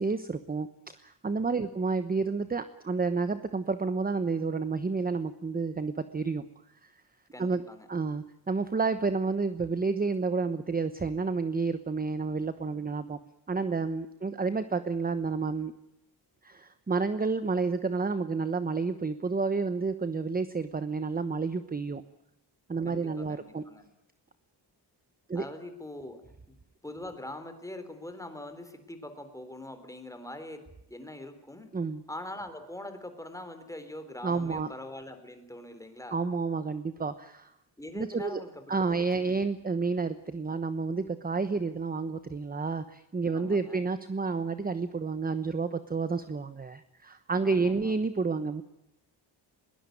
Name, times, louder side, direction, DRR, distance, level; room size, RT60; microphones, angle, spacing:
voice 1, 0.0-6.4 6.8-6.9 7.4-7.6 7.9-13.2 13.5-15.7 16.4-22.0 22.7-23.6 25.3-25.4 31.7-32.0 34.2-34.7 36.1-37.5 37.9-38.4 38.7-48.6, right 4 dB, 20° right, 11 dB, 1.0 m, -30 dB
voice 2, 1.5-1.8 7.3-7.9 22.8-23.9 25.3-26.2 26.8-30.6 30.9-31.7 32.1-36.2 37.8-39.4 43.3-43.8 47.4-48.0, left 1 dB, 10° left, 8 dB, 3.7 m, -43 dB
21.5 x 19.5 x 9.3 m, 0.84 s
wide cardioid pair, 135°, 42 cm